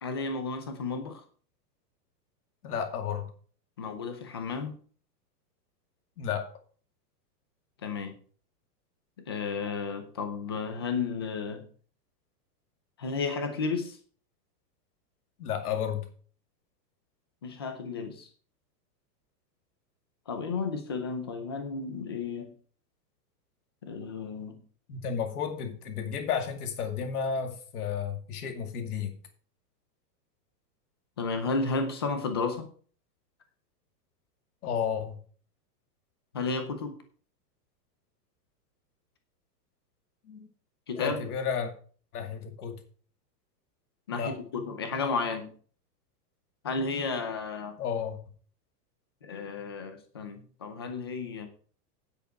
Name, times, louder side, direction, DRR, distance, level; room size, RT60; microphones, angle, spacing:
voice 1, 0.0-1.2 3.8-4.7 7.8-8.1 9.2-11.7 13.0-14.0 17.4-18.3 20.3-22.5 23.8-24.6 31.2-32.7 36.3-37.0 40.9-41.2 44.1-45.5 46.6-47.8 49.2-51.5, left 4 dB, 15° left, 7 dB, 0.5 m, -33 dB
voice 2, 2.6-3.3 6.2-6.5 15.4-16.1 24.9-29.1 34.6-35.2 40.2-40.5 40.9-41.7 42.1-42.8 44.1-44.4 47.8-48.2, left 7 dB, 60° left, 5 dB, 2.4 m, -32 dB
9.6 x 8.3 x 4.8 m, 0.43 s
supercardioid pair, 180°, 50 cm